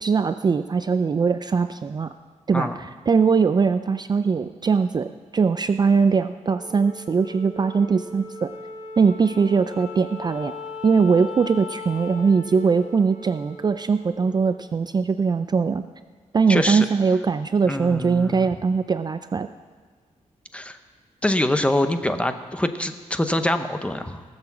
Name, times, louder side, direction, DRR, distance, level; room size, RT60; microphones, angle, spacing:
voice 1, 0.0-2.1 2.5-8.5 9.0-10.5 10.8-15.8 16.3-19.5, right 5 dB, 35° right, 10 dB, 0.4 m, -21 dB
Wind instrument woodwind instrument, 6.4-15.0, left 3 dB, 65° left, 2.0 m, -39 dB
voice 2, 16.5-16.9 17.7-18.5 20.5-20.8 21.2-24.2, left 1 dB, 10° left, 8 dB, 0.7 m, -24 dB
17.5 x 6.9 x 7.2 m, 1.5 s
wide cardioid pair, 125°, 13 cm